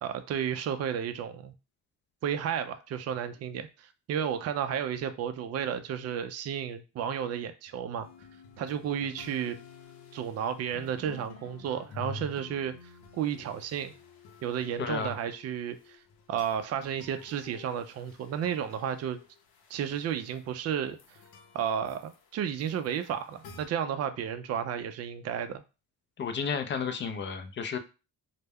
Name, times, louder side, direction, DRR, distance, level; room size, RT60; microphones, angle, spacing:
voice 1, 0.0-1.5 2.2-8.1 8.6-9.6 10.1-12.7 13.2-13.9 14.4-16.0 16.3-19.2 19.7-21.0 21.5-25.6, right 8 dB, 40° right, 10 dB, 0.4 m, -32 dB
sound 1, 8.0-23.7, left 4 dB, 70° left, 0.7 m, -50 dB
voice 2, 14.8-15.1 26.2-27.8, left 6 dB, 30° left, 9 dB, 0.4 m, -32 dB
2.2 x 2.1 x 3.4 m, 0.31 s
cardioid pair, 90°, 39 cm